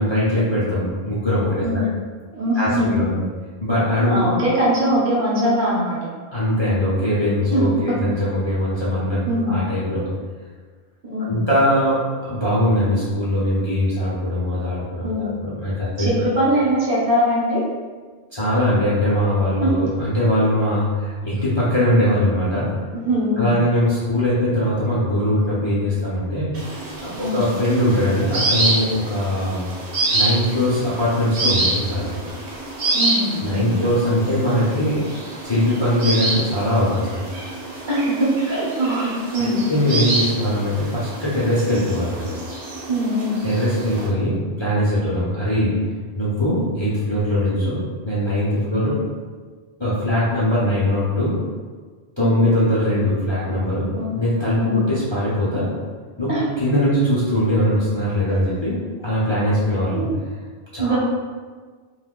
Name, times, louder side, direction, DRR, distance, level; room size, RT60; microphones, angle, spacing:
voice 1, 0.0-1.6 2.6-3.1 3.6-4.3 6.3-10.1 11.2-16.1 18.3-22.7 23.4-26.5 27.0-29.6 30.1-32.2 33.4-35.0 35.4-37.2 39.4-42.4 43.4-45.8 46.1-49.0 49.8-51.4 52.2-55.7 56.2-56.3 56.6-60.0 60.7-61.0, left 1 dB, 30° left, -9 dB, 0.6 m, -21 dB
voice 2, 2.3-3.2 4.1-6.1 7.5-8.0 9.2-9.6 11.0-11.4 15.0-15.4 16.0-17.6 19.6-19.8 22.9-23.5 27.1-27.4 32.9-33.7 37.9-39.6 42.9-43.4 48.6-48.8 52.2-52.4 53.9-54.2 54.6-54.8 56.3-56.5 58.3-58.4 59.6-60.1 60.8-61.0, equal, 55° right, -6 dB, 1.0 m, -22 dB
sound 1, 26.5-44.1, right 2 dB, 75° right, 1.0 m, -27 dB
2.7 x 2.4 x 3.6 m, 1.5 s
omnidirectional pair, 1.1 m